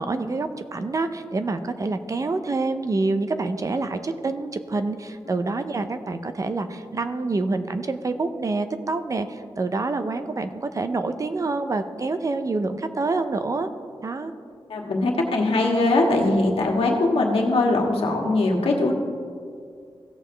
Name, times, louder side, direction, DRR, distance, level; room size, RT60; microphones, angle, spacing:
voice 1, 0.0-13.7 14.0-14.3, right 3 dB, 35° right, 9 dB, 0.5 m, -27 dB
voice 2, 14.7-18.9, left 2 dB, 75° left, 0 dB, 1.5 m, -21 dB
16.5 x 7.0 x 3.3 m, 2.2 s
wide cardioid pair, 150°, 10 cm